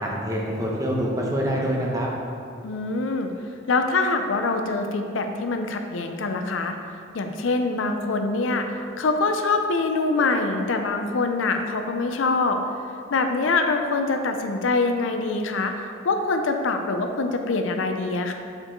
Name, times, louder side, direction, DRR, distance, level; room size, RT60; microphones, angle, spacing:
voice 1, 0.0-2.1, equal, 15° right, -3 dB, 0.8 m, -25 dB
voice 2, 2.6-3.3 3.7-6.8 7.1-12.6 13.1-18.3, left 3 dB, 85° left, 5 dB, 0.5 m, -24 dB
6.6 x 4.5 x 3.8 m, 2.4 s
head